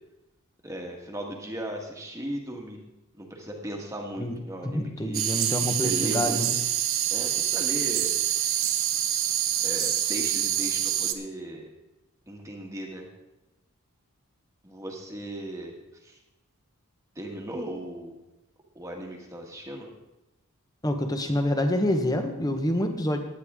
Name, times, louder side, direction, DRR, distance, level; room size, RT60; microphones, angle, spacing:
voice 1, 0.6-2.8 3.2-5.2 5.6-6.4 7.1-8.1 9.6-11.7 12.3-13.1 14.6-15.7 16.0-16.2 17.1-18.1 18.7-19.9, right 1 dB, 15° right, 1 dB, 1.5 m, -37 dB
voice 2, 4.6-6.5 20.8-23.2, left 1 dB, 15° left, 6 dB, 1.0 m, -27 dB
sound 1, 5.1-11.1, right 11 dB, 65° right, 0.8 m, -26 dB
17.0 x 9.8 x 3.7 m, 0.97 s
head